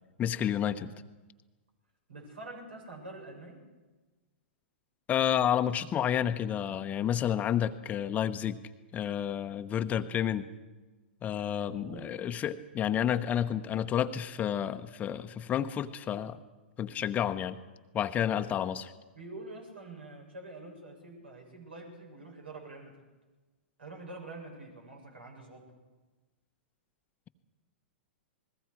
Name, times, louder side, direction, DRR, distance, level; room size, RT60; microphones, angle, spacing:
voice 1, 0.2-0.9 5.1-8.6 8.9-10.5 11.2-16.4 16.8-17.6 17.9-18.9, left 10 dB, 25° left, 10 dB, 1.0 m, -30 dB
voice 2, 2.1-3.6 11.8-12.2 19.2-22.9 23.8-25.7, right 2 dB, 75° right, 1 dB, 7.3 m, -46 dB
28.5 x 21.0 x 4.7 m, 1.2 s
figure-of-eight pair, 105°, 6 cm